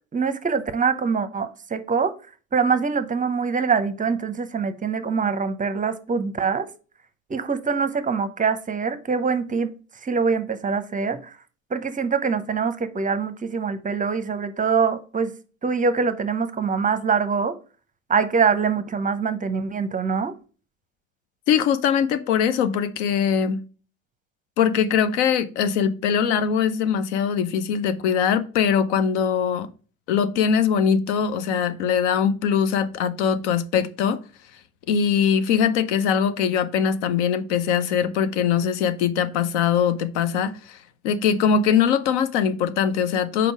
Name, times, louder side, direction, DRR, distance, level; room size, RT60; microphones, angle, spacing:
voice 1, 0.1-2.1 2.5-6.7 7.3-9.7 10.0-11.3 11.7-15.3 15.6-17.5 18.1-20.3, right 5 dB, 20° right, 0.7 m, -24 dB
voice 2, 21.5-23.6 24.6-29.7 30.1-34.2 34.9-40.8 41.0-43.5, left 7 dB, 65° left, 0.8 m, -22 dB
5.3 x 4.6 x 4.7 m
figure-of-eight pair, 65°, 38 cm